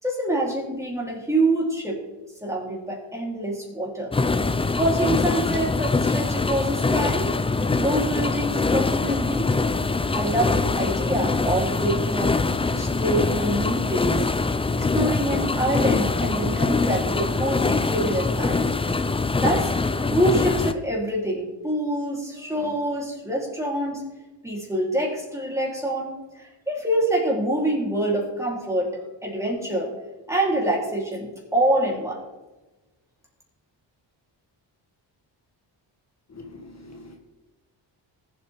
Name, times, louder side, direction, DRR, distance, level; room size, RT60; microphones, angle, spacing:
voice 1, 0.0-2.0 2.4-4.1 4.7-7.3 7.6-9.5 10.1-14.2 14.7-18.7 19.4-19.7 20.1-24.0 24.4-29.9 30.3-32.2, right 1 dB, 5° right, -3 dB, 3.9 m, -26 dB
sound 1, 4.1-20.7, left 3 dB, 15° left, 0.4 m, -23 dB
voice 2, 36.3-37.2, left 2 dB, 35° left, 2 dB, 1.5 m, -43 dB
20.0 x 8.0 x 3.7 m, 1.1 s
wide cardioid pair, 115°, 44 cm